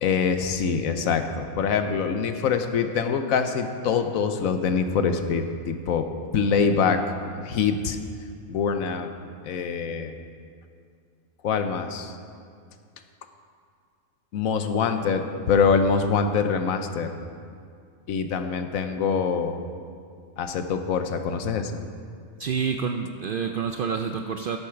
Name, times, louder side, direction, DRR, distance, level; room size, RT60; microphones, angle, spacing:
voice 1, 0.0-6.0 6.3-7.0 7.3-8.0 8.5-9.1 9.4-10.1 11.4-12.2 14.3-17.1 18.1-19.6 20.4-21.8, left 6 dB, 80° left, 7 dB, 1.2 m, -24 dB
voice 2, 22.4-24.6, right 6 dB, 70° right, 6 dB, 0.5 m, -28 dB
12.5 x 8.1 x 5.8 m, 2.3 s
omnidirectional pair, 1.5 m